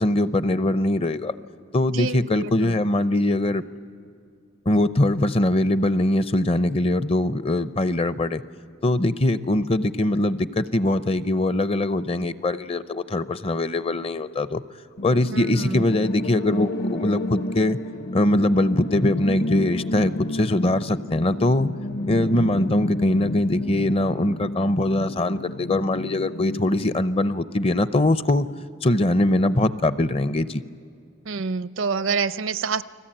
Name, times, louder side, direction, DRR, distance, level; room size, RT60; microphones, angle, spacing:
voice 1, 0.0-1.3 1.7-3.6 4.7-8.4 8.8-14.6 15.0-17.8 18.1-21.7 22.1-28.5 28.8-30.6, left 1 dB, 30° left, 14 dB, 0.6 m, -22 dB
voice 2, 1.9-2.8 15.3-15.8 31.3-32.8, right 5 dB, 75° right, 15 dB, 0.6 m, -27 dB
sound 1, 15.0-27.0, left 1 dB, 50° left, 0.8 m, -31 dB
29.5 x 20.5 x 8.9 m, 2.4 s
head